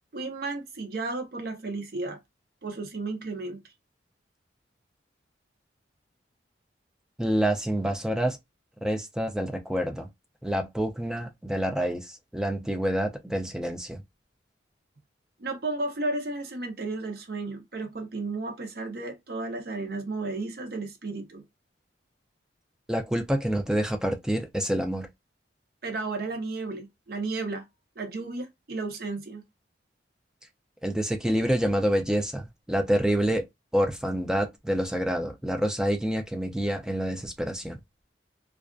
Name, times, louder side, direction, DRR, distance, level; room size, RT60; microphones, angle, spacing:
voice 1, 0.1-2.2 2.6-3.6 15.4-21.4 25.8-27.6 28.0-29.4, right 3 dB, 55° right, 0.6 m, -33 dB
voice 2, 7.2-8.4 8.8-10.1 10.4-14.0 22.9-25.1 30.8-33.4 33.7-37.8, equal, 5° right, 0.3 m, -27 dB
2.4 x 2.3 x 2.2 m
head